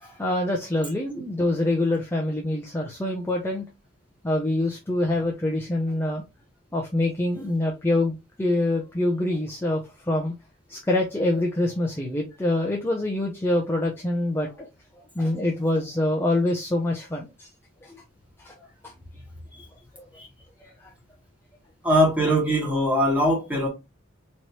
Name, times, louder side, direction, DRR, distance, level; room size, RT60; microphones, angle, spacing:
voice 1, 0.0-3.7 4.2-6.2 6.7-10.3 10.7-14.7 15.1-17.5 17.8-18.0 18.4-18.6 18.8-18.9 20.6-20.9, left 1 dB, 10° left, 0.6 m, -25 dB
voice 2, 21.8-23.7, equal, 5° right, 1.6 m, -21 dB
4.2 x 3.1 x 3.0 m
head